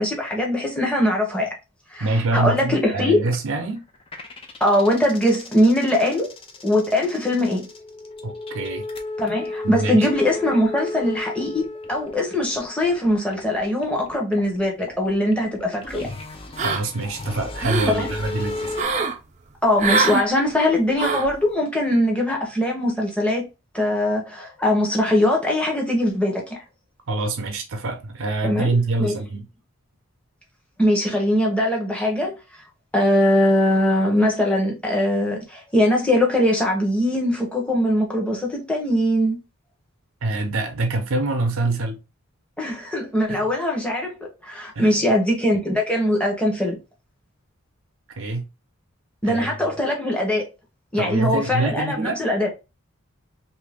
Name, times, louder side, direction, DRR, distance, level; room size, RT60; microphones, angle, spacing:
voice 1, 0.0-1.5 1.9-3.3 4.6-6.3 6.6-7.7 9.2-16.1 17.9-18.1 19.6-23.4 23.7-26.6 28.4-29.1 30.8-32.3 32.9-39.4 42.6-44.2 44.4-46.8 49.2-50.4 50.9-52.5, left 1 dB, 5° left, 0.8 m, -21 dB
voice 2, 2.0-3.8 8.2-8.9 9.6-10.1 16.6-18.8 27.1-29.4 40.2-42.0 43.3-43.5 44.7-45.1 48.2-48.4 49.2-49.5 51.0-52.2, right 2 dB, 75° right, 0.6 m, -25 dB
sound 1, 3.2-3.4 3.8-18.8, left 2 dB, 25° left, 0.4 m, -34 dB
sound 2, 16.6-17.1 17.4-18.0 18.7-19.2 19.8-20.3 21.0-21.3, right 4 dB, 35° right, 0.4 m, -23 dB
2.7 x 2.6 x 3.4 m
head